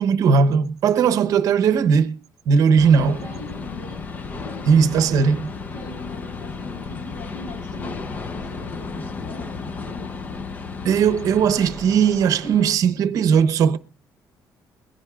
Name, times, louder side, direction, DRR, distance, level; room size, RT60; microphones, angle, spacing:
voice 1, 0.0-2.2 2.5-3.2 4.7-5.5 10.8-13.8, right 6 dB, 55° right, 0.8 m, -18 dB
sound 1, 2.8-12.8, left 4 dB, 25° left, 0.6 m, -34 dB
voice 2, 3.0-4.0 4.4-4.7 4.9-5.3 5.7-10.2, left 2 dB, 65° left, 7.3 m, -41 dB
22.5 x 10.5 x 2.4 m
cardioid pair, 175°, 7 cm